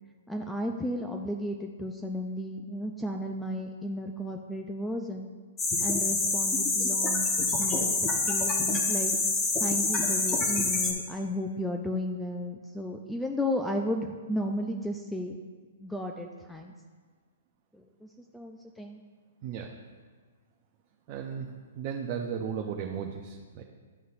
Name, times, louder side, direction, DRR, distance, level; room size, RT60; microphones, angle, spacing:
voice 1, 0.3-5.3 5.8-7.3 7.6-9.1 9.6-15.4 15.8-16.7 17.7-18.1 18.3-19.0, left 1 dB, 5° left, 3 dB, 0.4 m, -34 dB
sound 1, 5.6-10.9, left 3 dB, 20° left, 1.0 m, -27 dB
voice 2, 19.4-19.8 21.1-21.5 21.7-23.6, right 7 dB, 40° right, 1 dB, 0.6 m, -35 dB
11.0 x 3.9 x 2.5 m, 1.5 s
hypercardioid pair, 125°, 0 cm